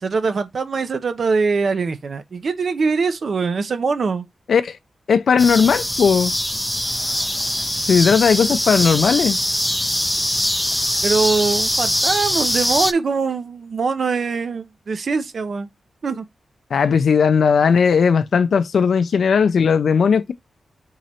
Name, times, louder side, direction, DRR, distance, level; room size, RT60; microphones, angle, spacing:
voice 1, 0.0-4.3 8.1-8.2 11.0-15.7 16.0-16.2, right 4 dB, 65° right, 0.6 m, -22 dB
voice 2, 5.1-6.3 7.9-9.4 16.7-20.3, left 6 dB, 75° left, 0.4 m, -17 dB
sound 1, 5.4-12.9, equal, 5° left, 0.4 m, -22 dB
3.8 x 3.0 x 4.2 m
cardioid pair, 55°, 0 cm